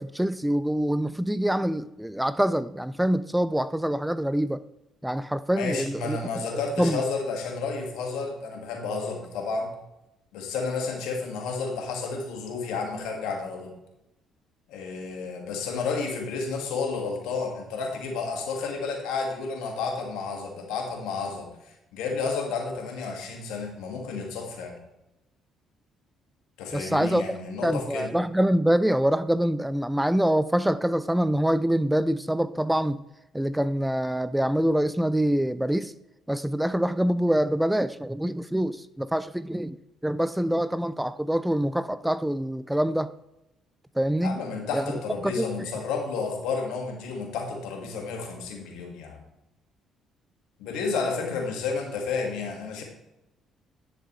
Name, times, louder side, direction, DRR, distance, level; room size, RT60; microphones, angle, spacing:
voice 1, 0.0-4.6 5.0-6.4 6.8-7.0 26.7-27.2 27.6-33.0 33.3-35.9 36.3-39.8 40.0-43.1 44.0-44.4 44.7-44.8 45.2-45.7, right 1 dB, 5° right, 15 dB, 0.4 m, -25 dB
voice 2, 5.5-9.7 10.3-13.7 14.7-21.5 21.9-24.8 26.6-28.1 44.2-49.2 50.6-52.8, left 4 dB, 75° left, 2 dB, 1.9 m, -31 dB
10.0 x 7.3 x 3.2 m, 0.91 s
hypercardioid pair, 55°, 0 cm